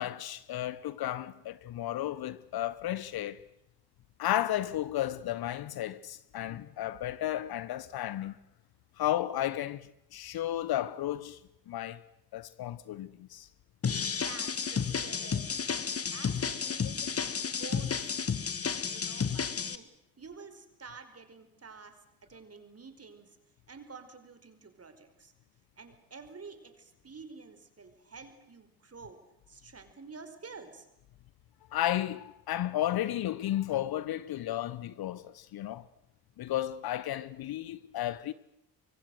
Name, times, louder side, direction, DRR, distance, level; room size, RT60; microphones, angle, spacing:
voice 1, 0.0-3.4 4.2-8.3 9.0-11.4 11.7-12.0 12.3-13.5 31.7-35.8 36.4-38.3, left 13 dB, 50° left, 1.1 m, -33 dB
sound 1, 13.8-19.8, left 6 dB, 30° left, 1.8 m, -32 dB
voice 2, 14.2-15.4 16.1-17.1 17.6-18.1 18.8-22.0 22.3-23.4 23.7-25.3 25.8-29.2 29.5-30.9, right 4 dB, 30° right, 4.7 m, -49 dB
25.0 x 24.0 x 7.9 m
figure-of-eight pair, 45°, 48 cm